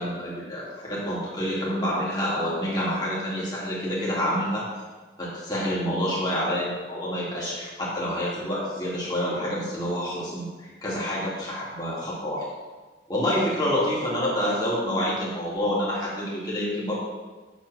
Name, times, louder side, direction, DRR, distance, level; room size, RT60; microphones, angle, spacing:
voice 1, 0.0-4.7 5.2-12.5 13.1-16.9, equal, 20° left, -7 dB, 2.4 m, -28 dB
7.5 x 3.9 x 6.2 m, 1.3 s
head